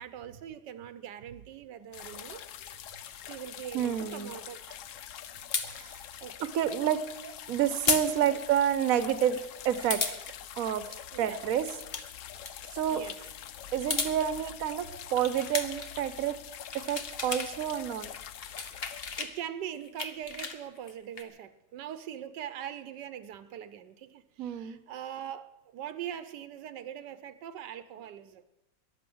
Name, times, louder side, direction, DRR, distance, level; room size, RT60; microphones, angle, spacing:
voice 1, 0.0-2.4 3.3-4.8 6.2-6.5 7.2-7.4 8.2-8.4 11.1-11.5 12.9-13.3 19.2-28.4, right 10 dB, 80° right, 13 dB, 1.3 m, -42 dB
sound 1, 1.9-19.2, left 10 dB, 60° left, 0.8 m, -45 dB
voice 2, 3.7-4.3 5.7-6.0 6.4-7.0 7.5-10.0 10.6-10.9 11.2-11.7 12.7-13.0 13.7-16.4 16.7-18.1 24.4-24.8, right 10 dB, 60° right, 13 dB, 1.2 m, -29 dB
sound 2, 5.5-5.7 7.9-8.1 8.4-8.5 9.9-10.2 11.7-12.0 12.4-12.5 13.7-14.1 15.2-15.9 16.5-17.5 17.8-19.3 19.7-21.2, left 4 dB, 40° left, 1.3 m, -33 dB
13.5 x 11.0 x 7.8 m, 0.94 s
omnidirectional pair, 1.8 m